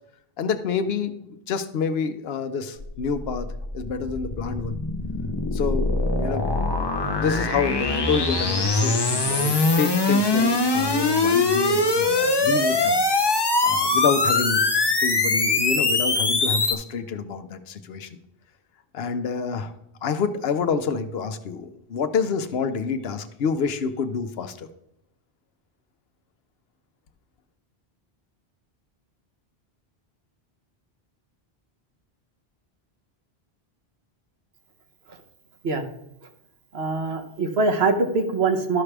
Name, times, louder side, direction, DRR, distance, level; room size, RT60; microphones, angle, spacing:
voice 1, 0.4-4.8 5.5-5.9 6.2-6.4 7.2-13.0 13.6-14.6 15.0-18.2 18.9-19.7 20.0-24.7, left 5 dB, 75° left, 10 dB, 0.9 m, -28 dB
sound 1, 2.8-16.7, left 3 dB, 30° left, 0.7 m, -22 dB
voice 2, 36.7-38.8, right 3 dB, 75° right, 5 dB, 1.2 m, -23 dB
12.5 x 5.9 x 3.3 m, 0.83 s
omnidirectional pair, 1.0 m